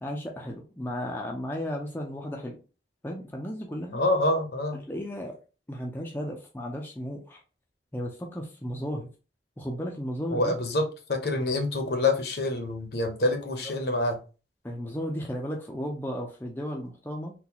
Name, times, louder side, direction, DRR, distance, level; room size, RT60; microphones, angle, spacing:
voice 1, 0.0-2.6 3.0-4.0 4.9-5.4 5.7-7.4 7.9-9.1 9.6-10.5 14.6-17.3, equal, 10° left, 0 dB, 0.4 m, -34 dB
voice 2, 3.9-4.8 10.3-14.2, left 2 dB, 60° left, 5 dB, 0.8 m, -26 dB
3.9 x 2.2 x 2.8 m, 0.34 s
head